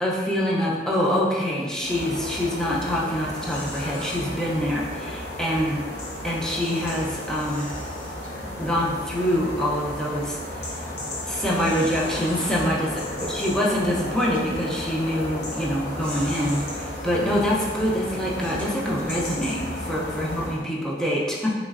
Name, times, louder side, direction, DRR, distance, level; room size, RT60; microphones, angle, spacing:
voice 1, 0.0-5.8 6.2-7.7 8.6-10.8 11.2-21.5, equal, 5° left, -5 dB, 0.4 m, -25 dB
sound 1, 1.8-20.6, left 1 dB, 65° left, 0.7 m, -34 dB
sound 2, 3.3-4.2 6.5-8.9 9.3-9.5 10.1-10.2 11.2-12.7 13.5-13.6 14.2-14.5 15.5-15.7 16.0-16.7 17.4-17.5 18.3-19.6, equal, 30° left, 1.1 m, -41 dB
3.2 x 3.0 x 2.4 m, 1.4 s
head